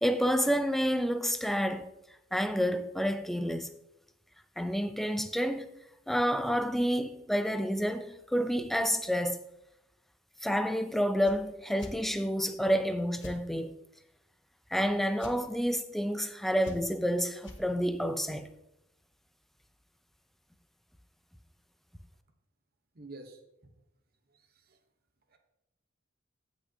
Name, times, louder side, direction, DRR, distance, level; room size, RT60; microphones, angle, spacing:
voice 1, 0.0-1.9 2.3-3.7 4.6-5.7 6.1-9.4 10.4-13.7 14.7-18.5, equal, ahead, 0.4 m, -29 dB
sound 1, 11.2-11.4 11.8-12.0 13.2-13.4 15.2-15.4 16.6-17.0 17.4-17.6, left 1 dB, 60° left, 1.1 m, -44 dB
voice 2, 22.9-23.4 24.7-24.8 25.3-25.4, right 2 dB, 45° right, 0.9 m, -47 dB
16.0 x 6.2 x 2.8 m
head